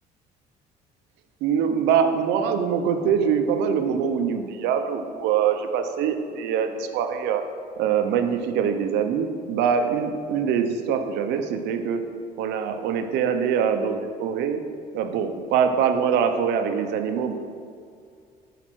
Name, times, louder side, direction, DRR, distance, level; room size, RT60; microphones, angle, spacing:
voice 1, 1.4-7.4 7.8-12.0 12.4-14.6 14.9-17.3, right 7 dB, 90° right, 7 dB, 0.8 m, -23 dB
9.0 x 5.0 x 6.3 m, 2.3 s
cardioid pair, 110°, 17 cm